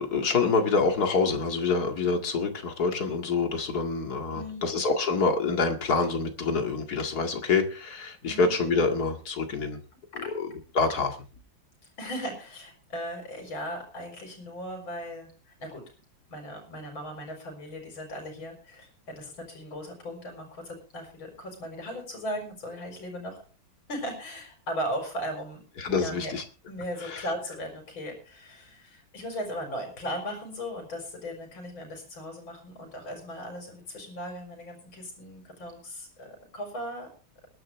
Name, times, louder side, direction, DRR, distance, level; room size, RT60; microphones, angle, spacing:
voice 1, 0.0-9.8 10.3-10.5 10.7-11.1 25.8-26.4 27.0-27.3, left 4 dB, 50° left, 4 dB, 2.5 m, -26 dB
voice 2, 4.3-4.6 8.3-8.5 10.1-10.3 12.0-15.8 16.3-23.4 23.9-25.6 26.0-26.3 26.7-37.1, equal, 75° left, 2 dB, 5.1 m, -37 dB
21.5 x 11.0 x 3.3 m, 0.35 s
omnidirectional pair, 2.2 m